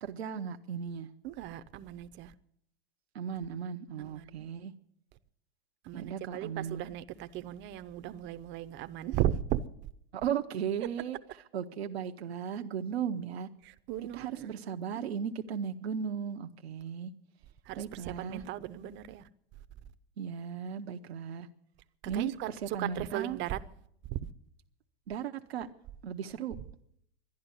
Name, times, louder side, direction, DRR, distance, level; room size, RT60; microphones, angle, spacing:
voice 1, 0.0-1.1 3.1-4.7 5.9-6.8 10.1-11.2 11.5-13.5 14.1-17.1 17.8-18.4 20.2-21.5 22.0-23.4 25.1-25.7 26.0-26.6, right 8 dB, 85° right, 0.9 m, -36 dB
voice 2, 1.2-2.3 4.0-4.5 5.8-9.6 13.6-14.5 17.7-19.3 22.1-22.5 22.8-23.6 24.1-24.3, right 12 dB, 40° right, 0.7 m, -36 dB
12.0 x 11.0 x 9.7 m
hypercardioid pair, 115°, 31 cm